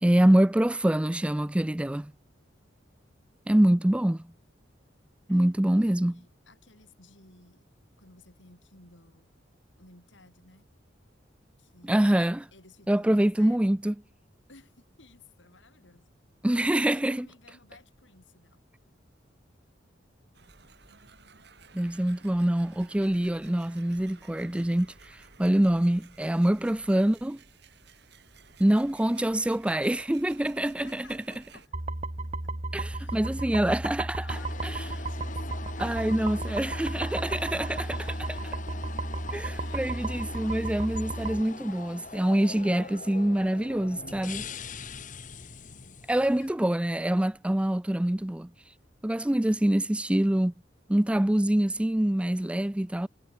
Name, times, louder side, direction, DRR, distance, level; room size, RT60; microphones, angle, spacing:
voice 1, 0.0-2.1 3.5-4.2 5.3-6.1 11.9-12.5 12.9-13.9 16.4-17.3 21.7-27.4 28.6-31.0 32.7-34.7 35.8-38.4 39.3-44.4 46.1-48.5 49.0-50.5 50.9-53.1, right 1 dB, 5° right, 0.3 m, -25 dB
voice 2, 5.3-7.7 8.0-9.3 9.8-10.7 11.6-12.1 12.5-13.8 14.5-16.1 16.7-18.6 30.7-31.8 32.4-32.6 32.9-36.3 39.5-40.8 45.6-46.0 46.4-46.5, left 2 dB, 85° left, 7.8 m, -56 dB
sound 1, 20.3-31.7, right 5 dB, 65° right, 5.6 m, -55 dB
sound 2, 31.7-41.4, right 2 dB, 40° right, 1.7 m, -34 dB
sound 3, 34.3-46.5, left 4 dB, 45° left, 1.6 m, -42 dB
head